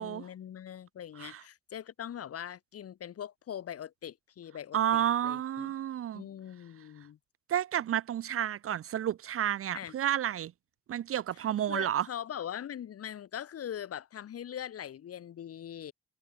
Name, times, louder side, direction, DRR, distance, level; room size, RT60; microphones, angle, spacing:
voice 1, 0.0-5.7 6.1-7.2 9.7-9.9 11.7-15.9, left 9 dB, 50° left, 1.1 m, -41 dB
voice 2, 4.7-6.2 7.5-10.5 10.9-12.1, right 10 dB, 50° right, 0.6 m, -31 dB
cardioid pair, 90°, 30 cm